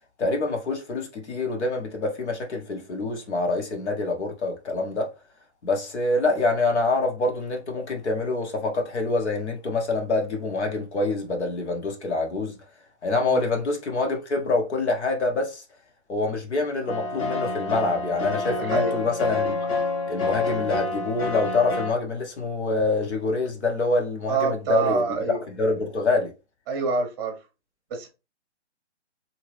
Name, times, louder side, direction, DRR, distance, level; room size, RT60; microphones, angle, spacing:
voice 1, 0.2-5.1 5.6-12.6 13.0-15.6 16.1-19.6 20.1-26.3, left 3 dB, 75° left, 1.2 m, -26 dB
sound 1, 16.9-21.9, left 3 dB, 30° left, 0.7 m, -27 dB
voice 2, 18.6-19.0 24.3-25.4 26.7-27.4 27.9-28.1, right 5 dB, 20° right, 0.8 m, -26 dB
2.8 x 2.8 x 3.0 m
hypercardioid pair, 150°, 35 cm